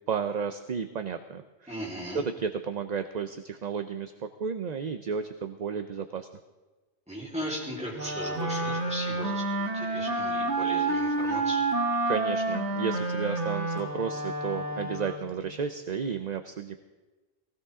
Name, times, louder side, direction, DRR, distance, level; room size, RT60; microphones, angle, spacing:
voice 1, 0.1-1.8 2.1-6.3 12.1-16.8, right 6 dB, 45° right, 8 dB, 0.7 m, -32 dB
voice 2, 1.7-2.2 7.1-11.6, equal, 5° right, -5 dB, 4.2 m, -37 dB
Wind instrument woodwind instrument, 7.9-15.4, right 2 dB, 75° right, 1.8 m, -29 dB
18.5 x 16.5 x 3.7 m, 1.2 s
omnidirectional pair, 1.1 m